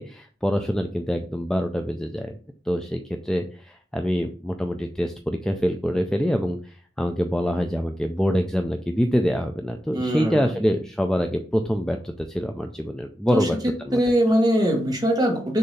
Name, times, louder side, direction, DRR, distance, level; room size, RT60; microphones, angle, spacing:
voice 1, 0.0-2.4 2.7-13.6 13.8-14.0, equal, 5° left, 5 dB, 0.3 m, -25 dB
voice 2, 9.9-10.5 13.3-13.5 13.9-15.6, equal, 20° right, 2 dB, 1.3 m, -21 dB
6.5 x 2.7 x 5.5 m, 0.42 s
head